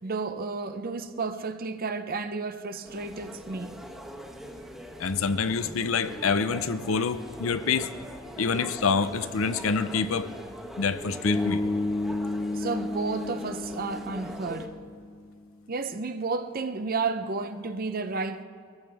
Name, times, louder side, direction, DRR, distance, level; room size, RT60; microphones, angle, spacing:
voice 1, 0.0-3.8 12.5-14.7 15.7-18.4, right 4 dB, 45° right, 0.7 m, -32 dB
sound 1, 2.8-14.7, equal, ahead, 1.3 m, -42 dB
voice 2, 5.0-7.9 8.4-10.3 10.8-11.6, left 5 dB, 75° left, 0.6 m, -27 dB
Bass guitar, 11.2-15.3, left 2 dB, 20° left, 0.3 m, -31 dB
21.5 x 14.5 x 3.5 m
head